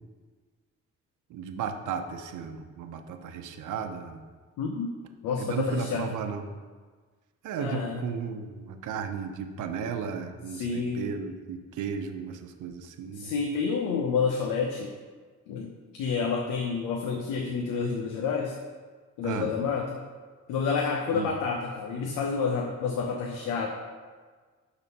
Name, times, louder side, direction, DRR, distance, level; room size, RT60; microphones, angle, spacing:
voice 1, 1.3-4.2 5.4-6.4 7.4-13.3 19.2-19.5 21.1-21.3, right 7 dB, 80° right, 6 dB, 0.9 m, -35 dB
voice 2, 4.6-4.9 5.2-6.1 7.6-8.0 10.5-11.1 13.2-14.9 15.5-15.7 16.0-18.6 19.2-20.0 20.5-23.7, left 5 dB, 90° left, 2 dB, 0.9 m, -29 dB
11.0 x 4.1 x 5.5 m, 1.5 s
cardioid pair, 90°, 30 cm